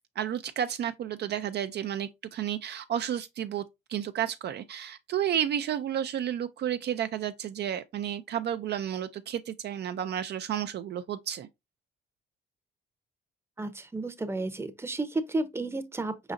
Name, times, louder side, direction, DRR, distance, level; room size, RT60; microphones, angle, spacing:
voice 1, 0.2-3.6 3.9-11.5, right 10 dB, 55° right, 0.4 m, -31 dB
voice 2, 13.6-16.3, right 2 dB, 10° right, 0.7 m, -32 dB
4.8 x 4.0 x 2.5 m
cardioid pair, 90°, 20 cm